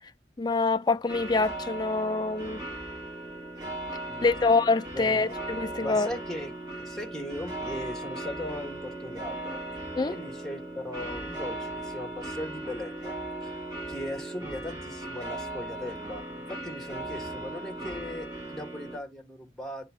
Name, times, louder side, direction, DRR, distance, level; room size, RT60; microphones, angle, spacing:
voice 1, 0.4-2.6 4.2-6.1 10.0-10.2, left 3 dB, 25° left, 0.4 m, -25 dB
sound 1, 1.1-19.0, right 1 dB, 20° right, 2.7 m, -38 dB
voice 2, 4.9-5.3 5.8-9.6 10.1-13.2 13.9-19.9, left 1 dB, ahead, 1.8 m, -38 dB
10.0 x 3.6 x 3.6 m
head